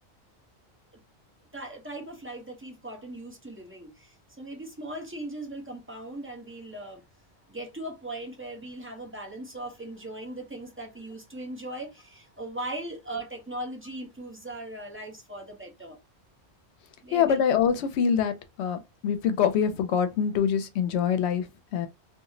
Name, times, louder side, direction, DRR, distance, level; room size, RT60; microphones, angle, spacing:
voice 1, 1.5-7.0 7.5-16.0 17.0-17.4, right 1 dB, 15° right, 0.5 m, -39 dB
voice 2, 17.1-21.9, left 7 dB, 80° left, 0.8 m, -25 dB
2.4 x 2.0 x 3.7 m
omnidirectional pair, 1.1 m